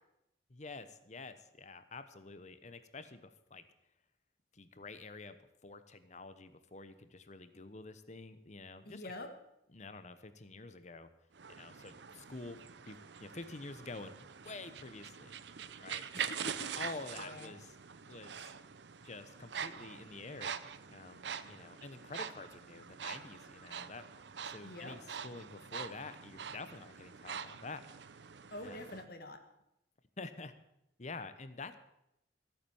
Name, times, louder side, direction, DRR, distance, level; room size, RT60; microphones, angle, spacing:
voice 1, 0.5-3.6 4.5-5.4 5.6-9.2 9.7-11.1 11.5-12.6 12.8-15.3 15.8-16.0 16.8-17.8 18.1-18.5 19.0-20.5 20.9-24.0 24.5-27.8 28.6-28.8 30.2-30.5 31.0-31.8, left 3 dB, 40° left, 12 dB, 1.0 m, -48 dB
voice 2, 8.8-9.3 16.1-16.7 17.2-17.5 24.6-25.0 28.5-29.4, left 1 dB, 55° left, 6 dB, 1.5 m, -46 dB
sound 1, 11.3-29.0, right 7 dB, 70° right, 0.7 m, -45 dB
15.0 x 9.1 x 7.1 m, 0.83 s
head